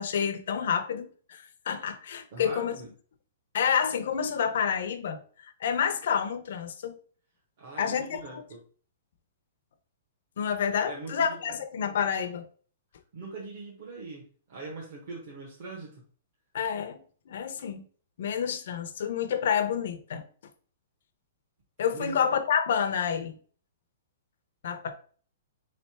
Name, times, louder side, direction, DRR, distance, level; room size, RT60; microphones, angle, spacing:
voice 1, 0.0-2.7 3.5-7.0 7.8-8.4 10.4-12.5 16.5-17.8 18.2-20.2 21.8-23.4 24.6-24.9, left 7 dB, 50° left, 0.6 m, -29 dB
voice 2, 2.3-2.9 7.6-8.6 10.8-11.5 13.1-16.0 21.9-22.2, right 3 dB, 35° right, 1.1 m, -41 dB
3.7 x 3.3 x 4.3 m
hypercardioid pair, 180°, 0 cm